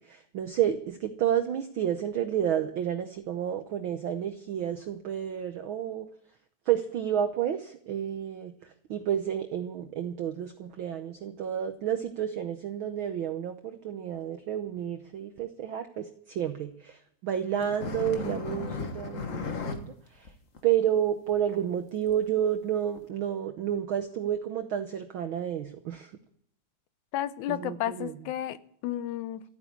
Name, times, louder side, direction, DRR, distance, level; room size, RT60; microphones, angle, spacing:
voice 1, 0.0-6.1 6.7-20.3 20.6-26.1 27.5-28.1, right 10 dB, 85° right, 8 dB, 1.1 m, -30 dB
sound 1, 17.6-19.8 20.2-20.3 20.5-20.6 21.3-21.4 22.1-22.2 23.0-23.1, left 5 dB, 50° left, 0.9 m, -35 dB
voice 2, 27.1-28.6 28.8-29.4, left 12 dB, 80° left, 14 dB, 2.1 m, -32 dB
14.5 x 9.1 x 8.4 m, 0.66 s
omnidirectional pair, 3.4 m